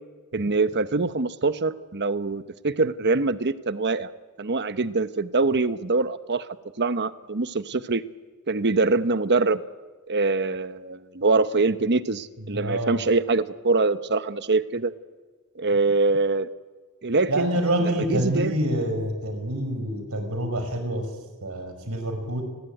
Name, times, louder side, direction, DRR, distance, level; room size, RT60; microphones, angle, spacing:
voice 1, 0.3-4.1 4.4-6.5 6.8-8.0 8.5-9.6 10.1-14.9 15.6-16.5 17.0-17.5 18.1-18.6, right 3 dB, 50° right, 12 dB, 1.1 m, -24 dB
voice 2, 12.4-13.0 17.3-22.4, right 1 dB, 75° right, 7 dB, 5.4 m, -27 dB
29.5 x 20.5 x 9.3 m, 1.3 s
head